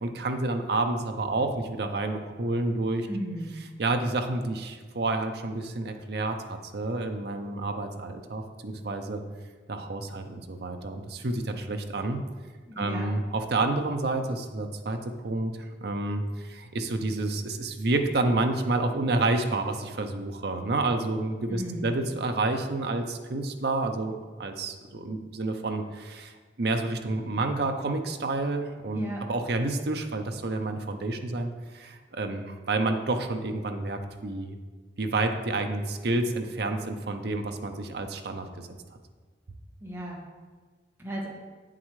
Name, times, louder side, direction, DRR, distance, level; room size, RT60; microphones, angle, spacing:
voice 1, 0.0-3.1 3.8-9.2 9.7-12.2 12.8-24.1 24.4-26.3 26.6-34.6 35.0-38.5, right 2 dB, 65° right, 5 dB, 0.7 m, -29 dB
voice 2, 3.1-3.6 12.7-13.1 21.5-21.9 28.9-29.2 39.8-40.2 41.0-41.3, right 1 dB, 15° right, -4 dB, 1.6 m, -35 dB
8.6 x 7.6 x 3.2 m, 1.5 s
head